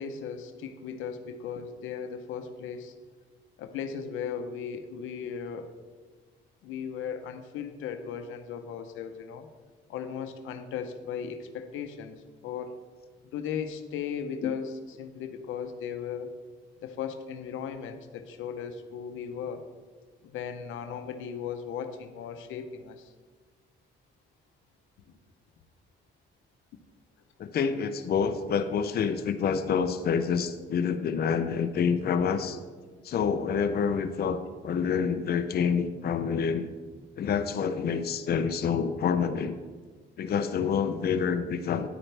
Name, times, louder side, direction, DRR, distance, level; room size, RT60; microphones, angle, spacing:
voice 1, 0.0-2.9 3.6-5.7 6.6-9.5 9.9-12.7 13.3-16.3 16.8-19.6 20.2-23.1, left 7 dB, 85° left, 8 dB, 0.7 m, -37 dB
voice 2, 27.4-32.6 33.0-36.7 37.2-39.6 40.2-41.9, left 6 dB, 50° left, 8 dB, 0.6 m, -27 dB
10.0 x 8.8 x 3.3 m, 1.4 s
cardioid pair, 90°, 20 cm